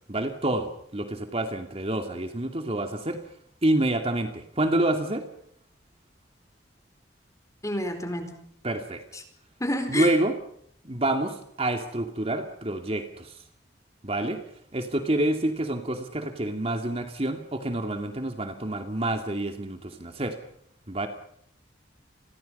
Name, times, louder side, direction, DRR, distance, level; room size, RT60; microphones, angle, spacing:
voice 1, 0.1-3.2 3.6-5.2 8.6-9.0 9.9-10.3 10.8-13.3 14.0-14.4 14.7-20.3 20.9-21.1, right 1 dB, 35° right, 5 dB, 2.4 m, -27 dB
voice 2, 7.6-8.4 9.1-9.2 9.6-10.1, left 1 dB, 15° left, 7 dB, 4.5 m, -29 dB
29.5 x 22.5 x 5.5 m, 0.69 s
head